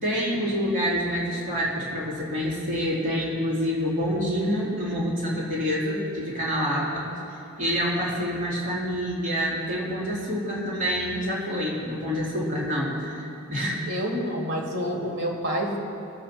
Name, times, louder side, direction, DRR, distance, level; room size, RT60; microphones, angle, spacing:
voice 1, 0.0-7.1 7.6-13.8, equal, 40° right, -6 dB, 2.7 m, -27 dB
voice 2, 13.9-15.8, equal, 75° right, -1 dB, 2.6 m, -28 dB
20.5 x 7.6 x 4.4 m, 2.8 s
head